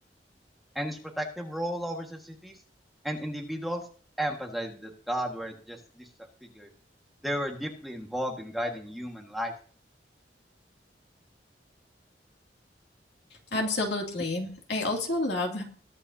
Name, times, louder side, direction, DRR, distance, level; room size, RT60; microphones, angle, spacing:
voice 1, 0.7-2.6 3.0-3.9 4.2-6.1 6.4-6.7 7.2-9.5, equal, ahead, 1 dB, 1.6 m, -34 dB
voice 2, 13.5-15.6, left 2 dB, 80° left, 1 dB, 2.5 m, -29 dB
21.5 x 8.9 x 2.8 m, 0.44 s
head